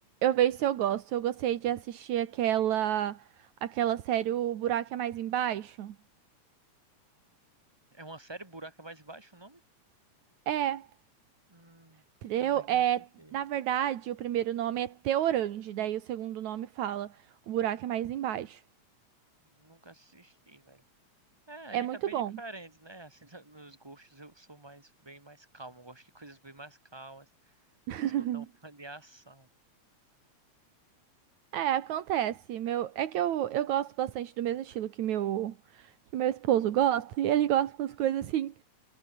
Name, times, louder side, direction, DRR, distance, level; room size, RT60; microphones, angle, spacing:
voice 1, 0.2-3.2 3.6-6.0 10.5-10.9 12.2-17.1 17.5-18.6 21.7-22.3 27.9-28.5 31.5-38.5, right 11 dB, 80° right, 2.7 m, -29 dB
voice 2, 7.9-9.6 11.5-12.0 12.4-12.8 13.2-13.3 19.6-20.8 21.5-27.3 28.0-29.5, right 2 dB, 10° right, 3.1 m, -48 dB
omnidirectional pair, 3.3 m